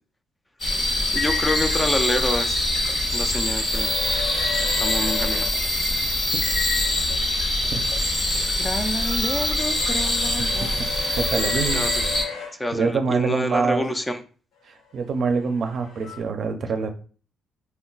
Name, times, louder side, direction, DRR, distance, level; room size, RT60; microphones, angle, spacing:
sound 1, 0.6-12.2, left 1 dB, 50° left, 1.1 m, -24 dB
voice 1, 1.1-2.6 3.1-3.9 4.8-5.4 8.6-10.8 11.7-12.0 12.6-14.2, left 1 dB, 15° left, 7 dB, 0.4 m, -27 dB
sound 2, 3.7-5.5 7.9-12.5 14.9-16.2, left 5 dB, 80° left, 0.8 m, -35 dB
voice 2, 11.2-11.8 12.7-13.8 14.9-16.9, right 5 dB, 55° right, 7 dB, 0.5 m, -24 dB
2.2 x 2.2 x 3.9 m, 0.40 s
cardioid pair, 90°, 0 cm